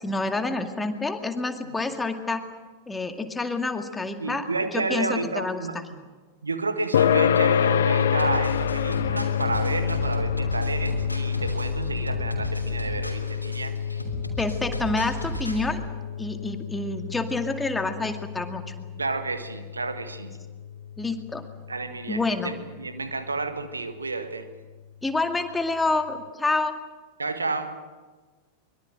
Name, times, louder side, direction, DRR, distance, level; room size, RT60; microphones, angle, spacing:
voice 1, 0.0-2.4 2.9-4.4 4.7-5.6 14.4-15.8 16.2-18.6 21.0-21.5 22.1-22.5 25.0-26.8, left 3 dB, 10° left, 6 dB, 2.2 m, -28 dB
voice 2, 4.2-6.0 6.4-13.8 19.0-20.3 21.7-24.5 27.2-27.7, right 3 dB, 80° right, 9 dB, 1.7 m, -31 dB
sound 1, 6.9-21.8, left 8 dB, 60° left, 0.9 m, -27 dB
sound 2, 8.1-15.7, right 3 dB, 90° left, 3.1 m, -36 dB
24.0 x 23.0 x 7.8 m, 1.3 s
figure-of-eight pair, 90°, 0 cm